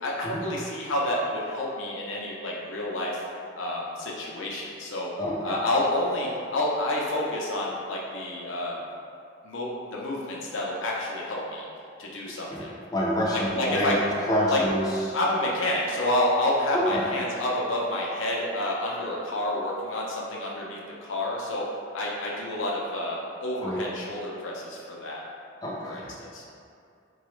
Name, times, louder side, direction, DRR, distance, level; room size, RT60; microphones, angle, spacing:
voice 1, 0.0-3.2 3.5-5.1 5.4-8.8 9.4-11.7 12.0-12.7 13.3-14.0 14.5-14.6 15.1-21.7 21.9-25.3 25.8-26.4, left 1 dB, 85° left, -4 dB, 0.6 m, -29 dB
voice 2, 5.2-5.6 12.5-12.6 12.9-13.9 14.3-15.2 16.7-17.0 23.6-23.8 25.6-26.1, equal, 20° left, -6 dB, 0.5 m, -27 dB
3.9 x 2.3 x 3.1 m, 2.4 s
head